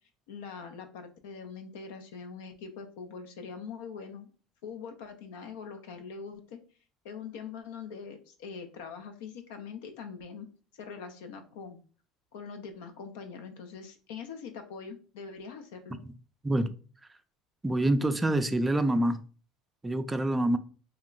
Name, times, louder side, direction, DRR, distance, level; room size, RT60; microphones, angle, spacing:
voice 1, 0.3-4.3 4.6-6.6 7.0-10.5 10.7-11.8 12.3-16.0, left 5 dB, 80° left, 0.4 m, -43 dB
voice 2, 17.6-19.2 19.8-20.6, right 1 dB, 15° right, 0.3 m, -26 dB
2.2 x 2.1 x 3.7 m
supercardioid pair, 95°, 0 cm